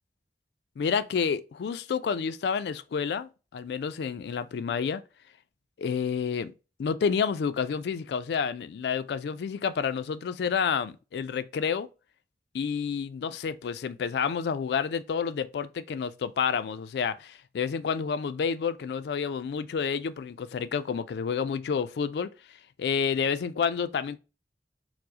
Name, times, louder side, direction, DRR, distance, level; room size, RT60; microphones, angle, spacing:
voice 1, 0.8-5.0 5.8-6.5 6.8-11.9 12.5-22.3 22.8-24.2, left 6 dB, 65° left, 0.3 m, -29 dB
4.5 x 2.0 x 2.7 m
head